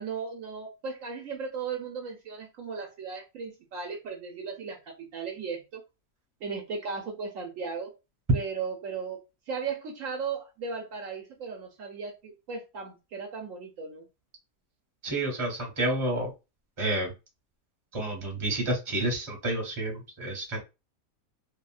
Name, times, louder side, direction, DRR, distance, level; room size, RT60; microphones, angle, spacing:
voice 1, 0.0-5.8 6.4-7.9 8.3-14.1, right 5 dB, 70° right, 1.0 m, -36 dB
voice 2, 15.0-16.3 16.8-17.1 17.9-20.6, right 1 dB, 25° right, 1.0 m, -29 dB
2.8 x 2.6 x 2.4 m
omnidirectional pair, 1.5 m